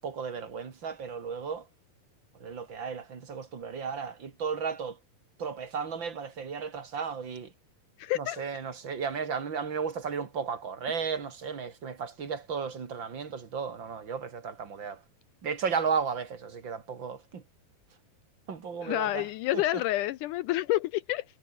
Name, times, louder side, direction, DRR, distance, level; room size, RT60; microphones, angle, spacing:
voice 1, 0.0-1.6 2.4-5.0 5.4-7.5 8.2-15.0 15.4-17.4 18.5-19.3 19.5-19.6, right 6 dB, 35° right, 2.8 m, -34 dB
voice 2, 8.0-8.4 18.8-21.2, left 16 dB, 80° left, 1.9 m, -29 dB
omnidirectional pair, 4.1 m